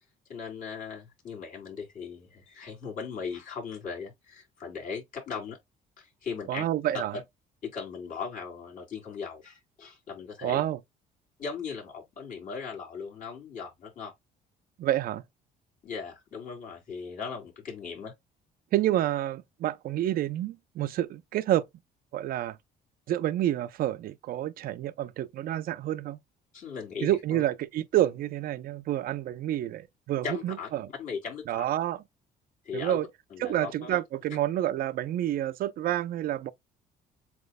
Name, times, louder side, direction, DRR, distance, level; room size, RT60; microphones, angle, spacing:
voice 1, 0.3-5.6 6.0-6.6 7.6-10.6 11.4-14.1 15.8-18.1 26.5-27.4 30.2-31.7 32.7-33.0 33.3-34.0, left 5 dB, 50° left, 3.6 m, -38 dB
voice 2, 6.5-7.2 10.4-10.8 14.8-15.2 18.7-21.7 22.1-22.6 23.1-26.2 27.0-30.9 31.5-32.0 32.7-33.1 33.4-36.5, right 13 dB, 60° right, 0.5 m, -29 dB
7.8 x 3.0 x 2.2 m
cardioid pair, 110°, 17 cm